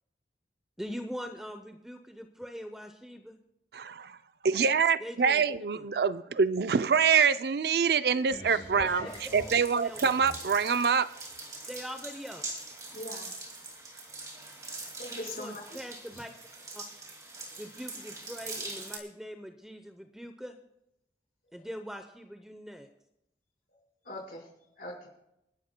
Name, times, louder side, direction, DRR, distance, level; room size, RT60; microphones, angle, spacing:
voice 1, 0.8-3.4 5.0-5.4 5.7-5.9 9.0-9.1 9.5-9.6 9.8-10.0 11.7-12.4 15.3-16.3 16.7-16.8 17.6-20.6 21.5-22.9, equal, 5° right, 0.7 m, -42 dB
voice 2, 3.7-4.2 4.4-9.1 9.3-11.1, right 6 dB, 65° right, 0.4 m, -25 dB
sound 1, 8.3-10.6 11.3-11.4, left 1 dB, 35° left, 5.2 m, -44 dB
sound 2, 9.1-19.0, right 2 dB, 20° right, 2.2 m, -43 dB
voice 3, 12.9-13.3 15.0-15.8 24.0-24.5 24.8-25.1, left 1 dB, 55° left, 4.9 m, -41 dB
29.0 x 11.5 x 2.2 m
head